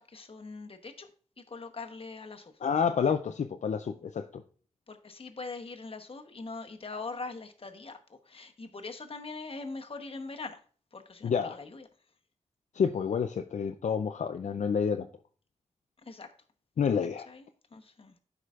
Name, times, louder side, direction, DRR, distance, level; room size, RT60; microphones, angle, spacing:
voice 1, 0.1-1.1 1.4-2.5 4.9-8.0 8.3-10.6 10.9-11.9 16.1-16.3 17.3-17.5 17.7-18.1, left 3 dB, 50° left, 5 dB, 1.1 m, -42 dB
voice 2, 2.6-4.4 11.2-11.6 12.7-15.1 16.8-17.3, left 6 dB, 70° left, 6 dB, 0.5 m, -29 dB
13.0 x 4.9 x 2.4 m, 0.42 s
cardioid pair, 60°, 13 cm